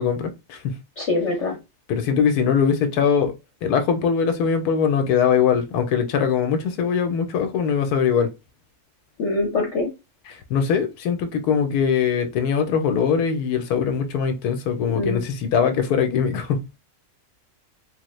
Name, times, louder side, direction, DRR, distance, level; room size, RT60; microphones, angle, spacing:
voice 1, 0.0-0.8 1.9-3.3 3.6-8.3 10.3-16.6, left 7 dB, 85° left, 1.1 m, -21 dB
voice 2, 1.0-1.6 9.2-9.9 14.9-15.2, left 2 dB, 55° left, 0.9 m, -23 dB
3.3 x 2.1 x 3.0 m
omnidirectional pair, 1.6 m